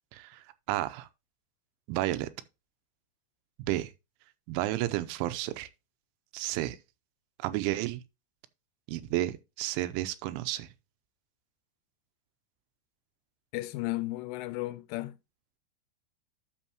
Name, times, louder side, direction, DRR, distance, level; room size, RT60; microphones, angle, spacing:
voice 1, 0.1-1.1 1.9-2.3 3.6-3.9 4.5-5.7 6.3-6.8 7.4-8.0 8.9-10.7, right 15 dB, 90° right, 3.1 m, -32 dB
voice 2, 13.5-15.2, left 19 dB, 90° left, 3.3 m, -34 dB
12.5 x 5.3 x 2.9 m
omnidirectional pair, 5.5 m